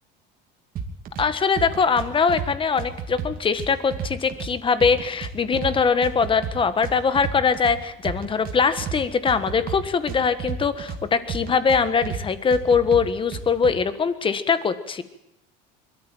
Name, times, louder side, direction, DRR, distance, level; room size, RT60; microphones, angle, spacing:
sound 1, 0.8-1.3 1.6-2.5 2.8-4.5 4.8-5.7 6.0-7.8 8.0-9.0 9.3-11.0 11.3-12.2 12.5-13.7, right 6 dB, 45° right, 2.9 m, -31 dB
voice 1, 1.2-15.0, left 5 dB, 25° left, 12 dB, 1.5 m, -22 dB
22.5 x 13.5 x 9.1 m, 0.85 s
cardioid pair, 125°, 21 cm